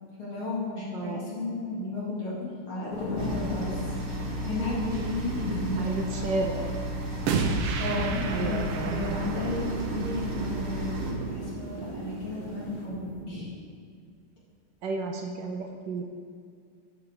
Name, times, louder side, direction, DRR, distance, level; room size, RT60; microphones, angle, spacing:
voice 1, 0.2-2.3 2.7-3.7 4.4-6.3 7.8-13.5, left 2 dB, 75° left, -8 dB, 3.6 m, -33 dB
voice 2, 0.9-1.3 5.8-6.8 8.3-9.2 14.8-16.0, right 3 dB, 70° right, 3 dB, 1.2 m, -33 dB
Thunder / Rain, 2.9-12.8, left 2 dB, 90° left, 2.6 m, -41 dB
sound 1, 3.2-11.1, right 1 dB, 40° right, 1.6 m, -34 dB
sound 2, 4.9-5.2 7.3-13.2, right 5 dB, 85° right, 1.7 m, -33 dB
12.5 x 5.1 x 4.8 m, 2.2 s
omnidirectional pair, 2.4 m